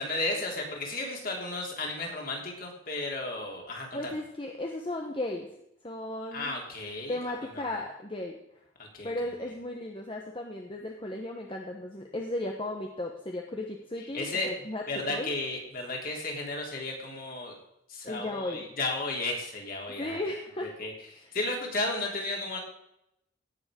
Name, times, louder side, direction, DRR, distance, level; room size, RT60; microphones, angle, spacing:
voice 1, 0.0-4.1 6.3-7.2 7.5-7.7 8.8-9.1 14.1-14.5 14.9-17.5 17.9-20.2 20.8-20.9 21.3-22.6, left 2 dB, 45° left, 0 dB, 3.4 m, -33 dB
voice 2, 3.9-5.5 5.8-6.5 7.1-8.4 9.0-15.3 18.0-18.6 20.0-20.7, left 1 dB, 25° left, 1 dB, 1.1 m, -35 dB
17.5 x 7.1 x 5.2 m, 0.81 s
head